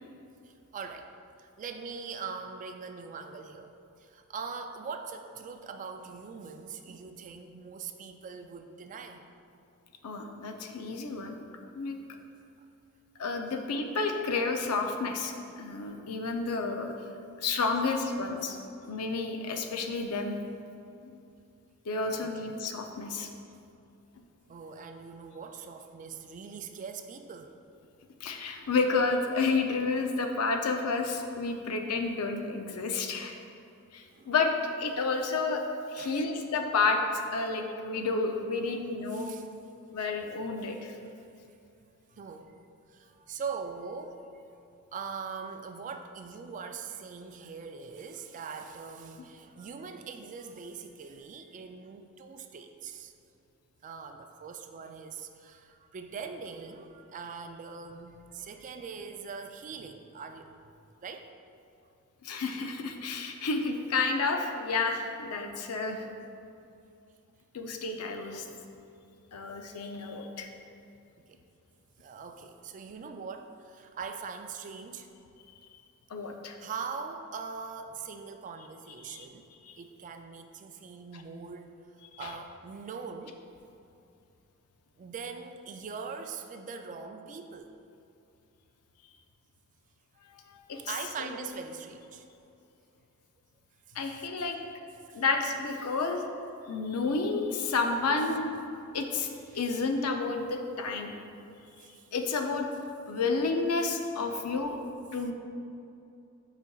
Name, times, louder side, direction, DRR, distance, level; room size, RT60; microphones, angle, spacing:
voice 1, 0.4-1.1 1.4-9.2 22.1-22.5 23.2-23.3 24.5-27.5 34.1-34.3 36.0-36.3 39.1-39.5 41.1-41.3 42.1-42.5 42.9-44.2 44.9-53.1 53.8-60.5 61.0-61.3 71.2-71.4 72.0-75.1 76.6-79.5 79.8-81.7 82.2-83.4 85.0-87.7 90.9-92.2 94.0-94.5 95.1-95.2 99.5-99.6 101.8-102.1, right 5 dB, 35° right, 6 dB, 0.3 m, -42 dB
voice 2, 10.0-11.4 11.7-12.0 13.2-15.3 15.6-16.9 17.4-18.6 18.9-20.3 21.0-21.2 21.9-23.3 28.2-33.4 33.9-34.5 34.8-35.6 35.9-37.0 37.3-39.3 39.9-40.9 62.2-66.1 67.5-68.5 69.3-70.5 76.1-76.6 79.0-79.3 79.6-79.7 82.2-82.4 90.3-90.9 91.2-91.5 93.9-94.6 95.1-96.3 96.7-98.5 98.9-99.3 99.5-101.1 102.1-102.7 103.1-104.8 105.1-105.3, left 4 dB, 75° left, 4 dB, 0.5 m, -30 dB
8.1 x 5.0 x 2.3 m, 2.6 s
head